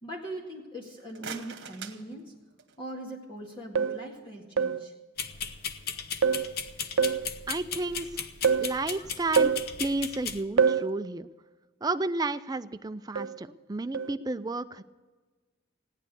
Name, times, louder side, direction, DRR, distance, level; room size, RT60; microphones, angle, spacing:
voice 1, 0.0-2.3 2.8-4.9 8.1-8.3 8.9-9.1, right 1 dB, 25° left, -3 dB, 2.0 m, -41 dB
sound 1, 0.8-2.9, right 6 dB, 60° right, 1.4 m, -44 dB
sound 2, 3.8-4.1 4.6-4.9 6.2-6.5 7.0-7.3 8.4-8.8 9.4-9.7 10.6-10.9 13.2-13.4 13.9-14.2, right 6 dB, 80° right, 0.6 m, -25 dB
sound 3, 5.2-10.4, left 7 dB, 50° left, 0.8 m, -36 dB
voice 2, 7.5-8.1 8.6-9.5 9.8-11.3 11.8-14.8, right 2 dB, 20° right, 10 dB, 0.4 m, -32 dB
17.0 x 10.0 x 6.9 m, 1.3 s
head